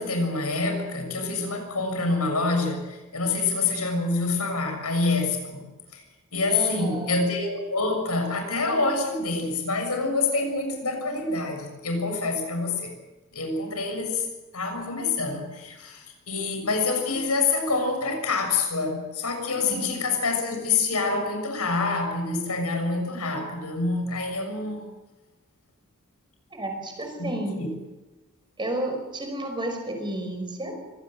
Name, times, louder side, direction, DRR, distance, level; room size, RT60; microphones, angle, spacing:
voice 1, 0.0-5.6 5.9-6.0 6.3-12.9 13.3-14.2 14.5-24.9 27.2-27.7, left 3 dB, 90° left, 4 dB, 6.9 m, -26 dB
voice 2, 6.5-7.3 19.6-20.1 26.5-27.5 28.6-30.7, right 1 dB, 20° right, 4 dB, 5.2 m, -31 dB
24.0 x 18.0 x 7.8 m, 1.1 s
head